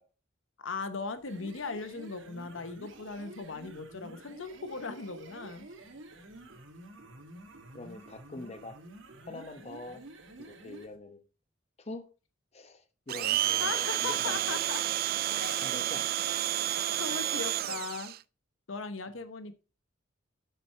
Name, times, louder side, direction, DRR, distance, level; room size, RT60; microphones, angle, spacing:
voice 1, 0.6-5.7 13.6-14.8 15.3-15.8 17.0-18.1 18.7-19.6, left 4 dB, 75° left, 0.9 m, -38 dB
sound 1, 1.2-11.0, right 2 dB, 75° right, 1.6 m, -50 dB
voice 2, 7.7-8.8 9.2-10.0 10.4-11.2 11.8-12.1 12.5-14.8 15.6-16.1, left 2 dB, 35° left, 1.0 m, -44 dB
Domestic sounds home sounds, 13.1-18.2, right 13 dB, 50° right, 0.3 m, -30 dB
7.6 x 6.8 x 4.4 m
head